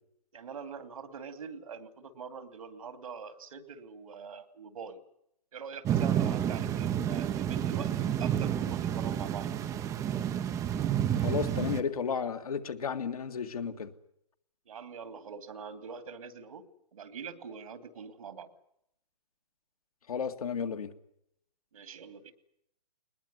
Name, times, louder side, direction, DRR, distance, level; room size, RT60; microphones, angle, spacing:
voice 1, 0.3-5.0 5.5-9.5 14.7-18.5 21.7-22.3, right 6 dB, 60° right, 12 dB, 2.7 m, -44 dB
sound 1, 5.9-11.8, right 10 dB, 15° right, 0.9 m, -30 dB
voice 2, 11.1-13.9 20.1-20.9, left 6 dB, 65° left, 7 dB, 2.0 m, -33 dB
21.0 x 20.5 x 9.6 m, 0.76 s
figure-of-eight pair, 125°, 20 cm